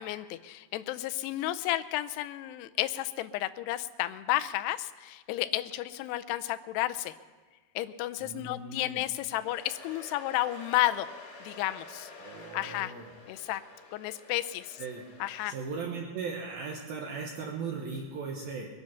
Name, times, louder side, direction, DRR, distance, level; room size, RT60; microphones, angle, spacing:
voice 1, 0.0-7.1 7.8-11.1 11.4-12.1 12.5-12.9 13.3-13.6 13.9-14.8 15.2-15.5, left 15 dB, 85° left, 10 dB, 2.5 m, -32 dB
voice 2, 8.2-9.0 12.2-13.1 14.8-15.0 15.4-18.7, right 5 dB, 65° right, 0 dB, 2.8 m, -38 dB
Domestic sounds home sounds, 9.0-15.7, left 3 dB, 55° left, 4.3 m, -50 dB
22.0 x 9.8 x 5.9 m, 1.4 s
omnidirectional pair, 5.2 m